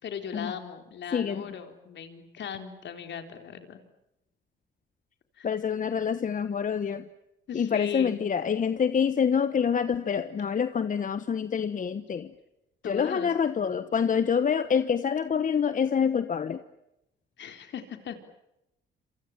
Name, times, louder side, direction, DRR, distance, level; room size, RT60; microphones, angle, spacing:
voice 1, 0.0-3.8 5.4-5.5 7.5-8.3 12.8-13.3 17.4-18.2, left 7 dB, 65° left, 6 dB, 4.1 m, -38 dB
voice 2, 1.1-1.4 5.4-7.1 7.5-12.3 12.9-16.6, left 7 dB, 40° left, 12 dB, 1.2 m, -26 dB
27.5 x 27.5 x 7.5 m, 0.88 s
cardioid pair, 90°, 20 cm